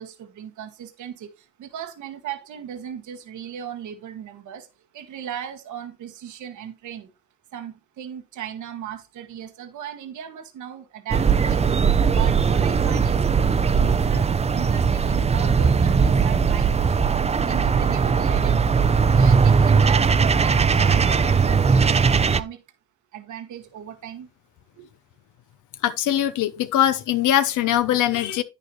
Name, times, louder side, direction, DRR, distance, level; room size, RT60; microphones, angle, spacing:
voice 1, 0.0-4.7 4.9-7.1 7.5-17.1 17.5-18.8 19.1-22.6 23.1-24.3 24.7-24.9, right 9 dB, 75° right, 1.3 m, -37 dB
sound 1, 11.1-22.4, right 5 dB, 20° right, 0.5 m, -19 dB
voice 2, 25.8-28.4, left 11 dB, 80° left, 0.7 m, -21 dB
9.3 x 6.7 x 3.1 m
cardioid pair, 90°, 30 cm